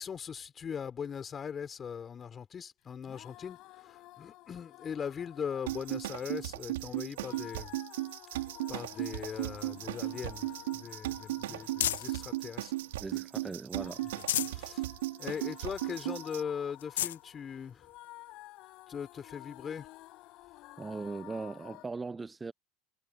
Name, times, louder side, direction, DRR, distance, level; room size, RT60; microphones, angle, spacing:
voice 1, 0.0-7.8 8.3-8.4 8.7-12.7 13.0-13.1 14.5-14.9 15.2-17.9 18.9-19.9, left 7 dB, 35° left, 5.7 m, -40 dB
sound 1, 3.0-21.9, left 19 dB, 60° left, 5.5 m, -52 dB
sound 2, 5.7-16.4, right 17 dB, 80° right, 2.6 m, -37 dB
sound 3, 9.6-12.3 12.8-13.6 14.0-14.7 15.1-15.2 15.6-15.7 16.3-16.4 16.7-17.2 18.0-18.1 19.9-20.0, left 13 dB, 80° left, 0.3 m, -36 dB
voice 2, 13.0-14.0 20.8-22.5, right 4 dB, 20° right, 0.8 m, -39 dB
hypercardioid pair, 85°, 0 cm